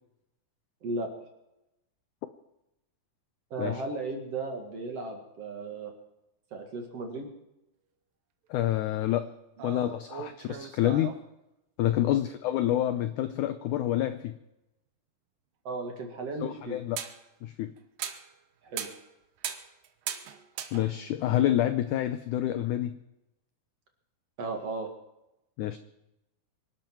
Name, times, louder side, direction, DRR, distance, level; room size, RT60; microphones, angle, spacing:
voice 1, 3.5-5.9 6.5-7.3 9.6-9.7 12.0-12.2 15.6-16.8 18.6-18.9 24.4-24.9, right 3 dB, 45° right, 3 dB, 2.6 m, -35 dB
voice 2, 8.5-9.3 9.6-11.1 11.8-14.3 16.4-17.0 17.4-17.7 20.7-23.0 25.6-25.8, left 12 dB, 85° left, 10 dB, 1.7 m, -28 dB
sound 1, 9.6-11.2 16.0-16.1 17.0-17.2 17.8-18.3 18.7-19.1 19.4-21.2, right 10 dB, 70° right, 2.6 m, -38 dB
26.0 x 12.0 x 4.6 m, 0.90 s
omnidirectional pair, 4.4 m